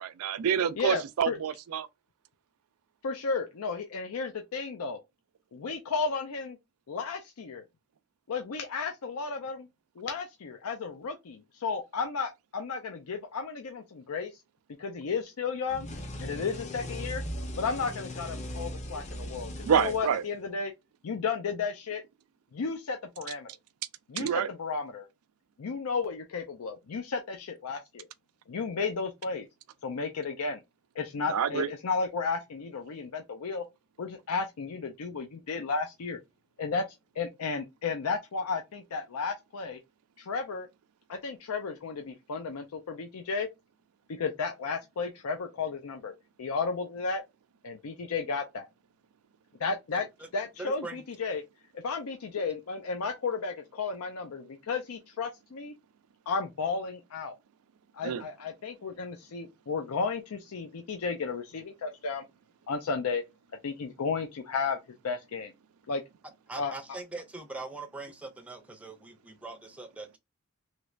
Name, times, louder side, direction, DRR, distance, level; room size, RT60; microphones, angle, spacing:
voice 1, 0.0-1.9 19.6-20.2 24.2-24.5 31.3-31.7 58.0-58.3, right 8 dB, 85° right, 0.4 m, -27 dB
voice 2, 0.8-1.4 3.0-5.0 5.5-6.6 6.9-7.6 8.3-9.7 10.0-14.4 14.8-15.9 16.2-17.2 17.6-20.7 21.0-22.0 22.5-23.5 24.1-25.1 25.6-28.1 28.5-29.5 29.8-30.6 31.0-33.6 34.0-36.2 36.6-36.8 37.1-39.8 40.3-40.7 41.1-43.5 44.1-46.1 46.4-47.2 47.6-48.7 49.6-50.1 50.3-51.4 51.8-55.7 56.3-57.4 57.9-62.2 62.7-63.2 63.6-64.8 65.0-65.5 65.9-66.0 66.6-66.7, left 4 dB, 85° left, 0.5 m, -33 dB
sound 1, 15.7-20.6, equal, 30° left, 0.6 m, -39 dB
voice 3, 50.6-51.0 66.5-70.2, right 2 dB, 5° right, 0.4 m, -41 dB
3.1 x 3.0 x 2.4 m
head